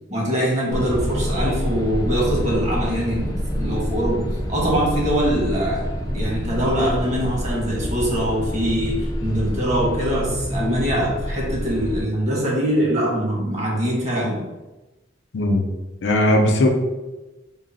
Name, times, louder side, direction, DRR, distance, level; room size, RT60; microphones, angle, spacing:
voice 1, 0.1-5.9 6.1-14.4, equal, 40° right, -3 dB, 1.1 m, -23 dB
sound 1, 0.7-12.0, equal, 20° left, 0.5 m, -27 dB
voice 2, 15.3-15.6 16.0-16.7, left 1 dB, 70° left, 2 dB, 0.5 m, -18 dB
3.8 x 2.0 x 3.9 m, 1.1 s
head